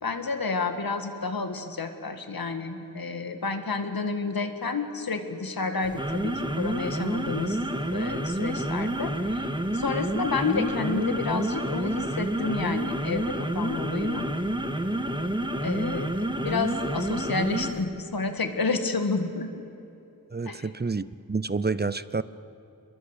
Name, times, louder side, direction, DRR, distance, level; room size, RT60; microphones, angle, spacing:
voice 1, 0.0-7.6 7.9-14.3 15.6-19.5 20.5-20.7, left 4 dB, 90° left, 7 dB, 1.9 m, -30 dB
sound 1, 5.8-17.8, right 1 dB, 15° right, 1.5 m, -29 dB
voice 2, 20.3-22.2, right 4 dB, 30° right, 16 dB, 0.6 m, -29 dB
25.5 x 22.0 x 8.2 m, 2.8 s
wide cardioid pair, 75°, 34 cm